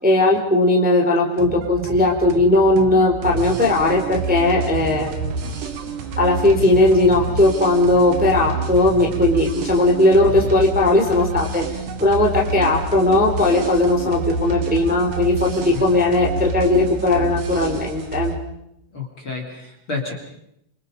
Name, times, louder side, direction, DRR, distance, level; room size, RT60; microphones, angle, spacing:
voice 1, 0.0-5.6 6.2-11.6 12.0-18.3, left 2 dB, ahead, 0 dB, 3.0 m, -18 dB
sound 1, 1.4-18.0, right 9 dB, 75° right, 3.2 m, -34 dB
sound 2, 3.2-18.4, right 2 dB, 45° right, 2.7 m, -29 dB
voice 2, 18.9-20.1, left 4 dB, 30° left, 1 dB, 3.6 m, -30 dB
28.5 x 25.5 x 5.4 m, 0.80 s
omnidirectional pair, 5.2 m